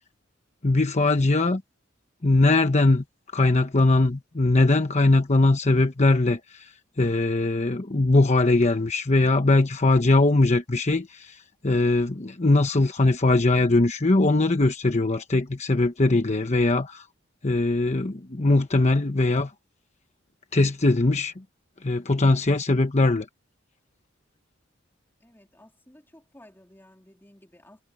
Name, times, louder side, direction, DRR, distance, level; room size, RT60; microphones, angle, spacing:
voice 1, 0.6-1.6 2.2-3.0 3.3-6.7 7.0-17.0 17.4-19.5 20.5-21.3 21.8-23.3, left 2 dB, 35° left, 1.1 m, -21 dB
voice 2, 25.2-27.8, left 1 dB, 10° left, 3.6 m, -54 dB
head